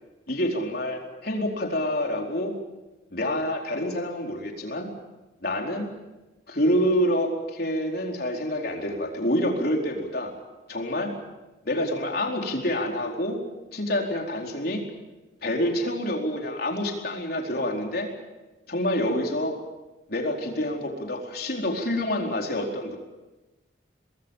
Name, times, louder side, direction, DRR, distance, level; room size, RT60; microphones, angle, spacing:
voice 1, 0.3-2.5 3.1-4.9 5.4-5.9 6.5-10.3 10.7-11.1 11.6-13.4 13.7-14.8 15.4-18.1 18.7-19.6 20.1-23.0, left 1 dB, 55° left, 1 dB, 4.4 m, -27 dB
24.5 x 21.5 x 7.4 m, 1.1 s
head